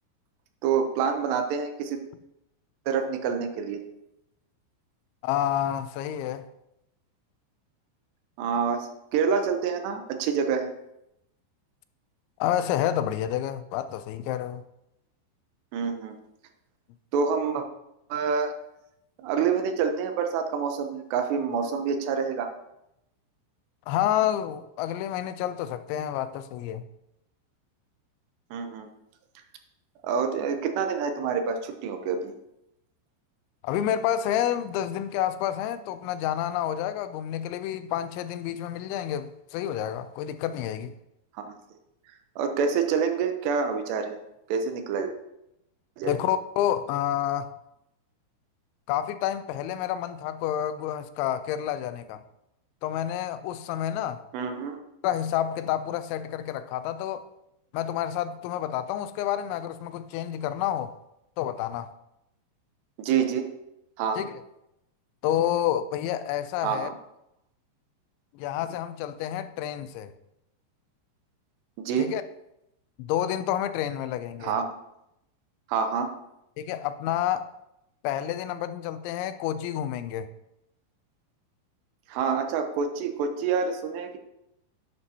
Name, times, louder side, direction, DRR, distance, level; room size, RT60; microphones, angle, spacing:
voice 1, 0.6-2.0 2.9-3.8 8.4-10.7 15.7-16.1 17.1-17.7 18.1-18.5 19.2-22.5 28.5-28.9 30.0-32.3 41.4-41.5 42.4-44.2 44.5-45.1 46.0-46.2 54.3-54.8 63.0-63.5 64.0-64.2 66.6-66.9 71.8-72.1 74.4-74.6 75.7-76.1 82.1-84.2, right 6 dB, 75° right, 6 dB, 2.8 m, -27 dB
voice 2, 5.2-6.5 12.4-14.6 23.9-26.8 33.6-40.9 46.0-47.5 48.9-52.2 52.8-54.2 55.0-57.2 57.7-60.9 61.4-61.9 64.2-64.3 65.2-66.9 68.3-70.1 72.0-72.2 73.0-74.6 76.6-77.5 78.0-80.3, left 11 dB, 85° left, 12 dB, 2.9 m, -29 dB
11.0 x 8.8 x 2.8 m, 0.84 s
omnidirectional pair, 5.4 m